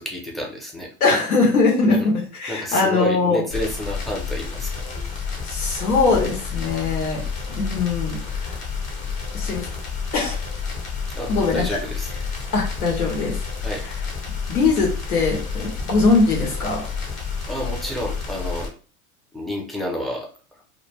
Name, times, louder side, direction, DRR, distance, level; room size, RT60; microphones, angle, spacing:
voice 1, 0.0-0.9 2.5-4.8 6.5-6.6 11.1-12.1 13.6-13.8 17.5-18.7 19.3-20.3, equal, ahead, -1 dB, 0.5 m, -30 dB
voice 2, 1.0-3.4 5.4-7.2 7.5-8.6 9.3-9.7 10.1-10.4 11.3-11.7 12.5-13.4 14.5-16.8, left 3 dB, 80° left, 0 dB, 1.1 m, -21 dB
sound 1, 3.5-18.7, left 5 dB, 40° left, 1.0 m, -30 dB
2.2 x 2.1 x 3.3 m, 0.38 s
hypercardioid pair, 95°, 43 cm